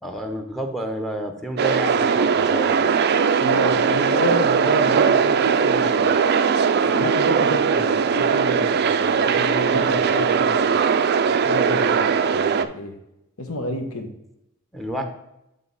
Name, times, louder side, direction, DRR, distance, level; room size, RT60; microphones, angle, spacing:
voice 1, 0.0-2.9 14.7-15.1, right 1 dB, ahead, 5 dB, 0.6 m, -30 dB
sound 1, 1.6-12.6, right 6 dB, 50° right, 0.4 m, -19 dB
voice 2, 3.4-6.1 6.8-10.7 11.2-13.0 13.4-14.1 14.9-15.1, left 1 dB, 85° left, 4 dB, 1.1 m, -30 dB
9.1 x 3.6 x 4.0 m, 0.85 s
head